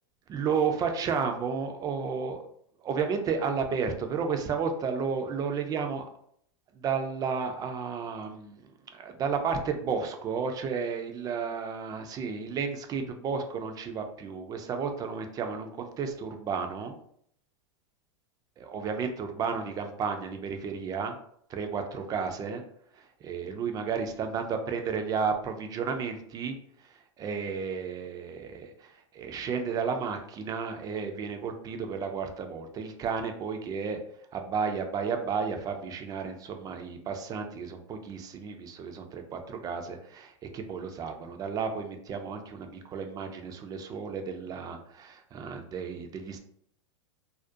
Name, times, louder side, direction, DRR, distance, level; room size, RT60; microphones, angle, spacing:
voice 1, 0.3-2.4 2.8-6.1 6.7-16.9 18.6-21.2 21.5-22.6 22.9-26.6 27.2-34.0 34.3-46.4, right 5 dB, 25° right, 5 dB, 0.3 m, -32 dB
2.4 x 2.1 x 2.5 m, 0.67 s
hypercardioid pair, 120°, 16 cm